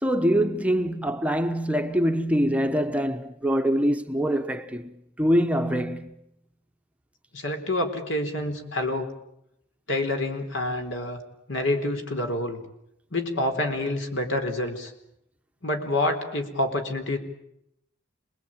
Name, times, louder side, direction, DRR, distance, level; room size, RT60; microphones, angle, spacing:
voice 1, 0.0-6.2, equal, 5° right, 1.0 m, -24 dB
voice 2, 7.3-9.1 9.9-11.2 11.5-12.6 13.1-14.9 15.6-17.2, left 1 dB, 65° left, 4.3 m, -27 dB
27.0 x 21.0 x 9.0 m
head